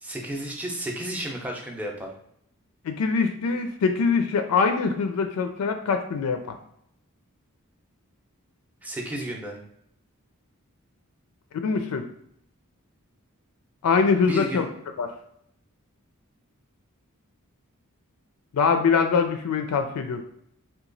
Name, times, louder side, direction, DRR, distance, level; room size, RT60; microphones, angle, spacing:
voice 1, 0.0-2.1 8.8-9.6 14.3-14.6, right 1 dB, 5° right, 0 dB, 0.5 m, -32 dB
voice 2, 2.8-6.5 11.6-12.1 13.8-14.7 15.0-15.1 18.5-20.2, left 5 dB, 85° left, 6 dB, 0.4 m, -23 dB
2.9 x 2.2 x 3.8 m, 0.72 s
head